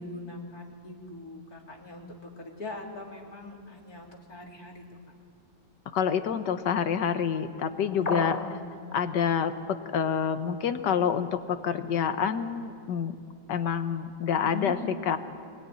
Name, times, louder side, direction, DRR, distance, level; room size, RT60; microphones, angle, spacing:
voice 1, 0.0-4.8 8.0-8.5 14.4-14.8, left 3 dB, 60° left, 0 dB, 3.9 m, -41 dB
voice 2, 5.9-8.4 8.9-13.2 13.5-15.2, left 7 dB, 80° left, 9 dB, 1.8 m, -27 dB
sound 1, 8.1-8.6, left 4 dB, 30° left, 0.8 m, -31 dB
28.0 x 21.0 x 9.9 m, 2.4 s
omnidirectional pair, 1.8 m